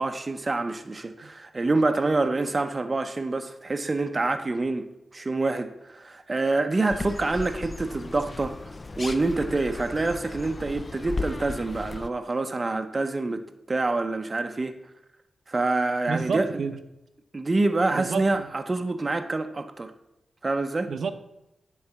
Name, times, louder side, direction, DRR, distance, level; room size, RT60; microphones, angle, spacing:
voice 1, 0.0-8.6 9.0-14.8 15.5-16.5 17.3-19.9 20.4-20.9, right 2 dB, 25° right, 0.6 m, -26 dB
sound 1, 6.9-12.1, left 3 dB, 25° left, 0.3 m, -36 dB
voice 2, 16.1-16.8 17.9-18.5 20.9-21.1, right 5 dB, 70° right, 0.7 m, -30 dB
9.6 x 4.6 x 7.2 m
wide cardioid pair, 165°, 0 cm